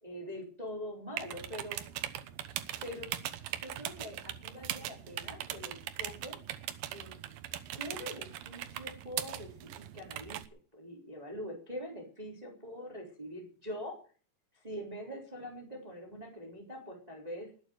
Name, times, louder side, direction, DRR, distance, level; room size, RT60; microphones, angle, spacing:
voice 1, 0.0-1.8 2.8-3.1 3.5-6.4 6.9-7.2 7.7-9.5 9.8-10.4 10.7-13.9 14.5-17.5, equal, 10° right, 0 dB, 3.6 m, -43 dB
sound 1, 1.2-10.5, right 12 dB, 70° right, 2.5 m, -40 dB
20.0 x 9.2 x 6.5 m, 0.41 s
omnidirectional pair, 4.8 m